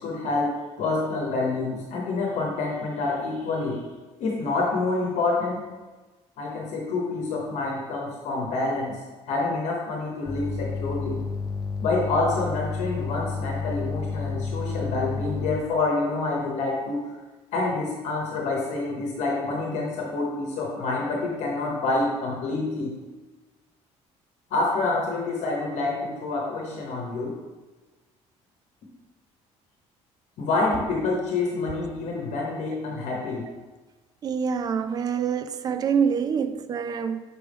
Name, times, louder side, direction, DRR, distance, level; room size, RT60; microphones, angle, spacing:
voice 1, 0.0-3.8 4.2-5.6 6.4-9.0 9.3-11.2 11.8-17.0 17.5-22.9 24.5-27.4 30.4-33.5, left 3 dB, 65° left, 1.1 m, -27 dB
sound 1, 10.3-15.6, left 4 dB, 25° left, 0.7 m, -31 dB
voice 2, 34.2-37.2, right 6 dB, 30° right, 0.4 m, -26 dB
6.2 x 4.6 x 3.5 m
cardioid pair, 145°, 12 cm